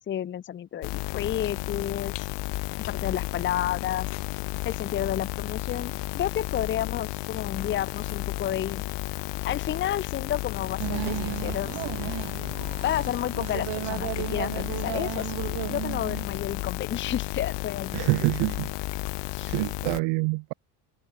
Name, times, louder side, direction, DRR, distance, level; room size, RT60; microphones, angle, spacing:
voice 1, 0.0-2.3 2.9-4.1 4.6-8.8 9.4-11.8 12.8-18.1 19.3-19.6, left 11 dB, 25° left, 0.7 m, -31 dB
sound 1, 0.8-20.0, left 20 dB, 65° left, 1.3 m, -33 dB
sound 2, 10.8-16.3, right 19 dB, 60° right, 1.1 m, -34 dB
voice 2, 17.9-18.7 19.5-20.5, right 28 dB, 80° right, 0.6 m, -26 dB
cardioid pair, 150°, 45 cm